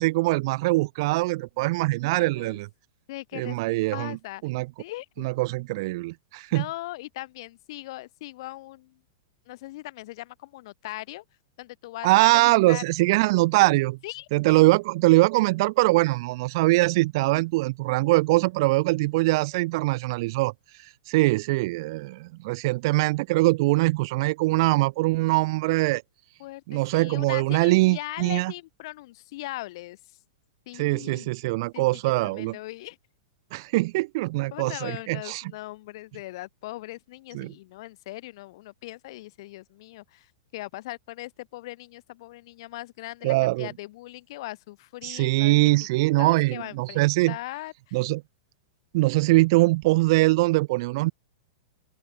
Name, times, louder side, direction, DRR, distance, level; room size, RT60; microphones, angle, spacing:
voice 1, 0.0-2.7 3.3-4.2 4.4-4.7 5.2-6.7 12.0-14.0 14.3-20.5 21.1-26.0 26.7-28.5 30.7-32.6 33.5-35.5 37.3-37.5 43.2-43.7 45.0-47.4 47.9-48.2 48.9-51.1, right 21 dB, 45° right, 2.0 m, -22 dB
voice 2, 2.2-2.6 3.1-3.6 3.9-4.4 4.8-5.3 6.5-9.0 9.5-11.2 11.6-12.8 14.0-14.6 26.4-30.0 30.7-31.3 31.7-31.9 32.2-33.0 34.5-45.6 46.0-48.0, left 18 dB, 50° left, 5.0 m, -39 dB
open air
supercardioid pair, 165°, 3 cm